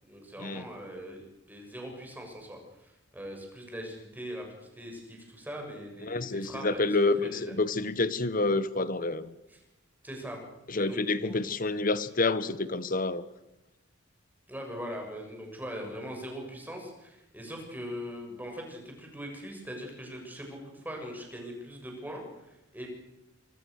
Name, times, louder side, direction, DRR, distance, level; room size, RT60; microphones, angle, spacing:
voice 1, 0.0-7.5 9.5-9.6 10.0-10.4 10.7-11.5 14.5-22.9, equal, 10° right, 2 dB, 7.1 m, -41 dB
voice 2, 6.0-9.3 10.7-13.3, left 3 dB, 45° left, 14 dB, 1.3 m, -28 dB
25.5 x 24.5 x 6.7 m, 0.94 s
head